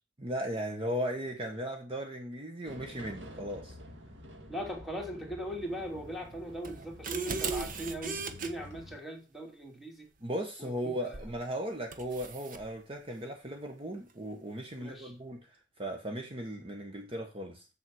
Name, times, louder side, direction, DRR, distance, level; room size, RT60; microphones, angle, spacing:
voice 1, 0.2-3.8 10.2-15.4 15.8-17.7, equal, 30° right, 3 dB, 1.3 m, -37 dB
sound 1, 2.7-9.0, left 1 dB, 90° right, 2.3 m, -49 dB
voice 2, 4.5-10.1 10.6-11.2 14.8-15.1, equal, ahead, -1 dB, 2.8 m, -40 dB
sound 2, 6.6-8.5 11.1-11.4 11.9-12.6, right 4 dB, 50° right, 1.2 m, -36 dB
7.6 x 7.3 x 6.2 m, 0.31 s
head